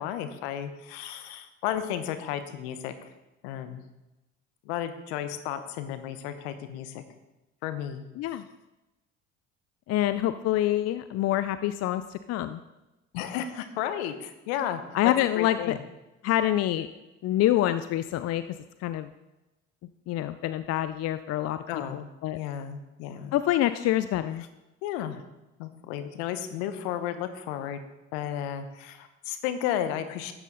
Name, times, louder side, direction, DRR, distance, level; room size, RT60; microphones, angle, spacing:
voice 1, 0.0-2.9 3.4-3.8 4.6-7.0 7.6-8.0 13.1-14.8 15.4-15.8 21.7-22.0 22.3-23.3 24.8-25.2 25.6-27.8 28.1-30.3, left 10 dB, 75° left, 9 dB, 1.1 m, -33 dB
voice 2, 9.9-12.6 14.9-15.7 16.2-16.9 17.2-18.4 18.8-19.1 20.1-21.6 21.9-22.4 23.3-24.4, left 13 dB, 50° left, 12 dB, 0.5 m, -26 dB
12.5 x 8.3 x 4.0 m, 1.0 s
hypercardioid pair, 60°, 34 cm